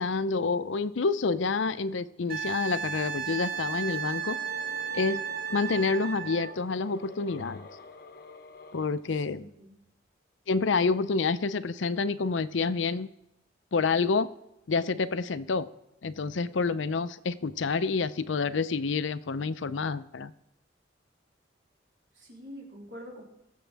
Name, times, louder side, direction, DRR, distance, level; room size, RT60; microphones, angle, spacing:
voice 1, 0.0-4.4 4.9-5.2 5.5-7.7 8.7-9.5 10.5-13.1 13.7-14.3 14.7-15.7 16.0-20.3, left 4 dB, 85° left, 14 dB, 0.6 m, -28 dB
Wind instrument woodwind instrument, 2.3-6.5 9.2-9.3, right 7 dB, 50° right, 1.0 m, -34 dB
sound 1, 3.5-8.9, left 3 dB, 55° left, 0.8 m, -48 dB
voice 2, 9.3-9.8 22.2-23.2, equal, 70° right, -3 dB, 3.9 m, -45 dB
22.0 x 7.6 x 3.4 m, 0.85 s
head